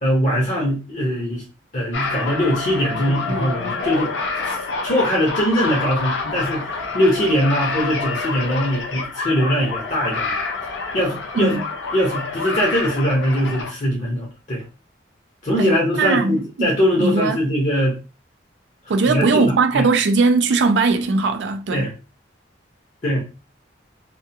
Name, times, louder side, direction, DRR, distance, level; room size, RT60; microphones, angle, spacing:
voice 1, 0.0-1.4 1.7-4.1 4.4-4.6 4.8-10.4 10.9-11.6 11.9-14.6 15.4-17.9 19.0-19.8 21.7-21.9 23.0-23.3, equal, 40° left, 0.7 m, -21 dB
sound 1, 1.9-13.7, left 4 dB, 75° left, 0.5 m, -27 dB
voice 2, 15.6-16.7 17.0-17.4 18.9-21.9, right 3 dB, 70° right, 0.4 m, -19 dB
2.3 x 2.2 x 2.7 m
head